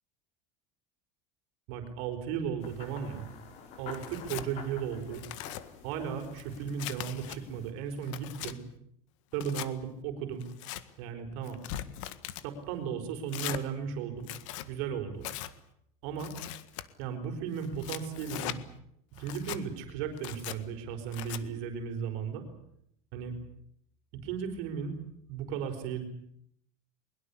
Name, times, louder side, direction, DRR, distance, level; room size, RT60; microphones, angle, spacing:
voice 1, 1.7-3.3 3.8-5.2 5.8-8.6 9.3-10.4 11.0-11.6 12.4-14.3 14.6-15.3 16.0-16.3 17.0-18.6 19.2-22.4 23.1-23.3 24.1-25.0 25.2-26.0, right 7 dB, 55° right, 5 dB, 4.7 m, -35 dB
sound 1, 2.6-7.7, left 6 dB, 40° left, 5.1 m, -49 dB
Tearing, 3.9-4.5 5.0-5.6 6.2-7.4 7.9-8.5 9.3-9.7 10.4-10.8 11.4-12.5 13.3-13.6 14.2-14.7 15.2-15.5 16.2-16.8 17.6-18.6 19.2-19.6 20.2-20.6 21.1-21.4, left 14 dB, 70° left, 1.7 m, -40 dB
22.5 x 22.0 x 8.5 m, 0.73 s
cardioid pair, 170°, 17 cm